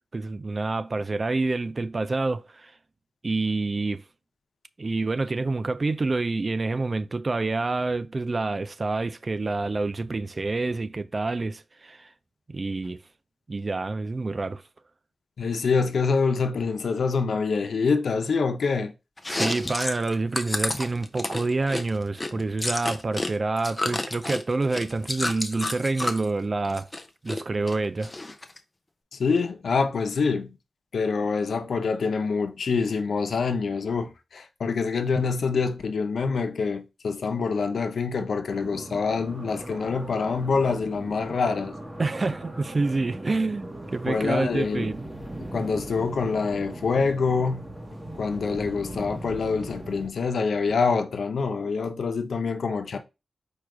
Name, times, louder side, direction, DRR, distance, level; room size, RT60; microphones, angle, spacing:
voice 1, 0.1-2.7 3.2-4.0 4.8-12.1 12.5-13.0 13.5-14.6 19.3-26.9 27.2-28.1 42.0-45.0, right 3 dB, 35° right, 0.3 m, -27 dB
voice 2, 15.4-18.9 29.1-30.5 30.9-41.7 44.1-44.9 45.5-47.7 48.1-53.0, left 4 dB, 75° left, 0.6 m, -26 dB
Chewing mastication, 19.2-23.3 23.6-26.2 26.6-27.4 27.7-28.6, left 2 dB, 20° left, 0.6 m, -30 dB
sound 1, 38.5-50.1, right 1 dB, 15° right, 1.0 m, -39 dB
4.7 x 2.3 x 4.8 m
wide cardioid pair, 110°, 0 cm